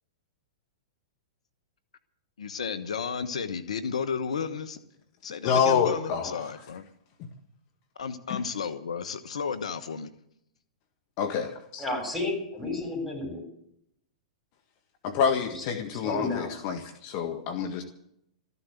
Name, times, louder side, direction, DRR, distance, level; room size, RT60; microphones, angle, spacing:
voice 1, 2.4-4.8 5.2-6.9 8.0-10.1, left 6 dB, 75° left, 1.1 m, -33 dB
voice 2, 5.4-6.5 8.3-8.4 11.2-11.8 15.0-17.8, left 6 dB, 45° left, 1.6 m, -27 dB
voice 3, 11.8-13.5 15.4-15.6 15.9-16.5, left 2 dB, ahead, 7.4 m, -32 dB
14.5 x 11.0 x 8.2 m
hypercardioid pair, 115°, 3 cm